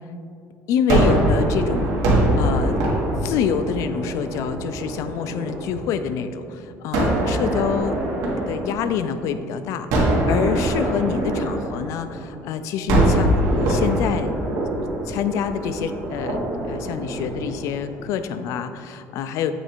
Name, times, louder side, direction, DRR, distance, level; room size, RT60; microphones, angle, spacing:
voice 1, 0.7-2.0 2.4-2.8 3.2-8.0 8.5-14.3 15.1-16.4 16.7-19.5, left 7 dB, 55° left, 11 dB, 0.3 m, -26 dB
Gunshot gunfire, 0.9-6.0 6.9-9.3 9.9-12.4 12.9-18.1, right 1 dB, 70° right, 1.4 m, -23 dB
7.9 x 3.2 x 4.6 m, 2.5 s
cardioid pair, 175°, 6 cm